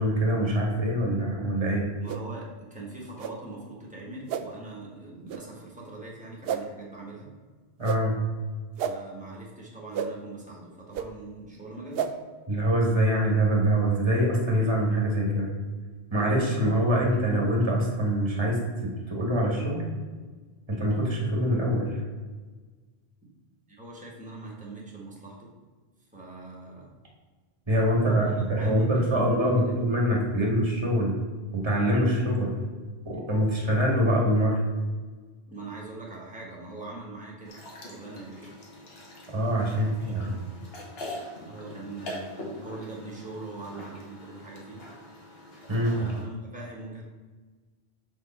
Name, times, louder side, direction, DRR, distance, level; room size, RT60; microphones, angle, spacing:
voice 1, 0.0-1.9 7.8-8.2 12.5-15.5 16.1-19.8 20.7-22.0 27.7-31.2 31.5-32.6 33.0-34.6 39.3-40.3 45.7-45.9, equal, 25° right, -2 dB, 1.4 m, -24 dB
voice 2, 2.0-7.3 8.8-12.2 23.7-25.5 26.1-26.9 27.9-29.8 35.5-38.5 39.7-40.4 41.4-44.8 45.7-47.0, right 2 dB, 5° right, -4 dB, 1.3 m, -42 dB
sound 1, 2.1-2.2 3.2-3.3 4.3-4.4 5.3-5.4 6.4-6.6 7.8-8.0 8.8-8.9 9.9-10.1 10.9-11.1 11.9-12.1, right 8 dB, 70° right, 0.7 m, -30 dB
drinking water, 37.4-46.2, left 1 dB, 65° left, 1.4 m, -43 dB
6.4 x 4.5 x 4.3 m, 1.4 s
omnidirectional pair, 1.1 m